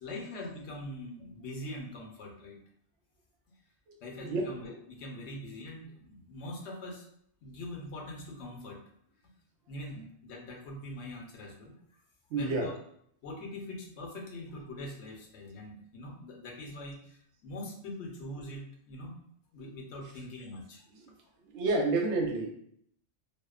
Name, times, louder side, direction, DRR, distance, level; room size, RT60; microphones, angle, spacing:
voice 1, 0.0-2.6 4.0-7.1 7.4-8.8 9.7-11.8 12.3-12.7 13.2-19.2 19.5-20.8, left 1 dB, 80° left, 0 dB, 0.9 m, -43 dB
voice 2, 12.3-12.7 20.9-21.1 21.5-22.5, right 3 dB, 90° right, 1 dB, 0.9 m, -29 dB
2.7 x 2.1 x 2.3 m, 0.68 s
omnidirectional pair, 1.1 m